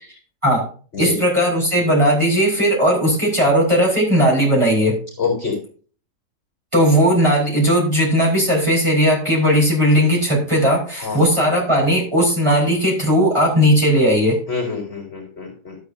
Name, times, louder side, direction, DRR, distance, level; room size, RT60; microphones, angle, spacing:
voice 1, 1.0-5.0 6.7-14.4, equal, 20° right, -4 dB, 4.1 m, -17 dB
voice 2, 5.2-5.6 11.0-11.2 14.5-15.8, left 5 dB, 40° left, 1 dB, 3.6 m, -25 dB
12.5 x 8.5 x 2.7 m, 0.40 s
omnidirectional pair, 1.6 m